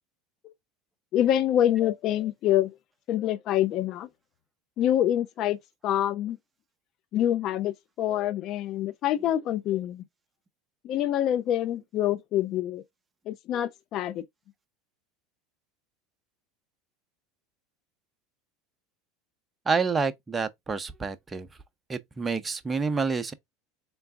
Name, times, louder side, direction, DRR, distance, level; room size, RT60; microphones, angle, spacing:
voice 1, 1.1-2.8 3.1-4.1 4.8-5.6 5.8-6.4 7.1-10.0 10.8-12.8 13.3-14.2, left 11 dB, 50° left, 0.4 m, -26 dB
voice 2, 19.7-21.5 21.9-23.3, right 4 dB, 20° right, 0.6 m, -28 dB
3.8 x 3.4 x 3.4 m
supercardioid pair, 105°, 0 cm